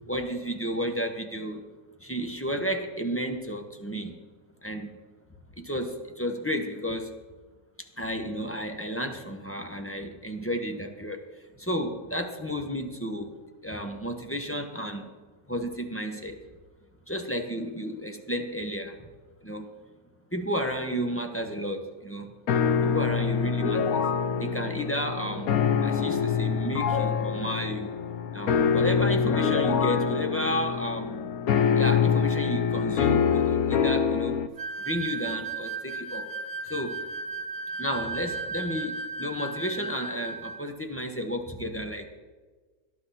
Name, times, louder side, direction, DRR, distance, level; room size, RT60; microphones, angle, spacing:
voice 1, 0.1-1.6 2.0-4.2 4.6-4.9 5.6-7.1 8.0-11.2 11.6-13.3 13.6-15.1 15.5-16.4 17.1-18.9 19.4-19.7 20.3-22.3 22.8-24.0 24.4-25.5 25.8-27.9 28.3-31.2 31.7-34.4 34.8-36.3 36.6-37.0 37.8-42.1, equal, 10° left, 4 dB, 1.0 m, -32 dB
sound 1, 22.5-34.5, left 6 dB, 65° left, 1.2 m, -25 dB
sound 2, 34.6-40.6, right 4 dB, 50° right, 1.3 m, -35 dB
18.0 x 12.0 x 4.2 m, 1.4 s
omnidirectional pair, 1.7 m